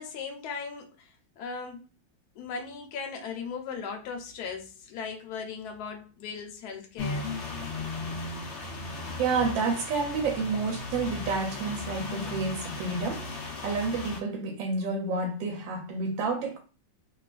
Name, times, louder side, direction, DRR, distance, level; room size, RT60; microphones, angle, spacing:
voice 1, 0.0-1.8 2.3-7.3, left 5 dB, 70° left, 1.0 m, -38 dB
sound 1, 7.0-14.2, left 3 dB, 85° left, 0.6 m, -36 dB
voice 2, 9.2-16.6, right 4 dB, 80° right, 1.3 m, -30 dB
3.0 x 2.3 x 2.4 m
omnidirectional pair, 2.0 m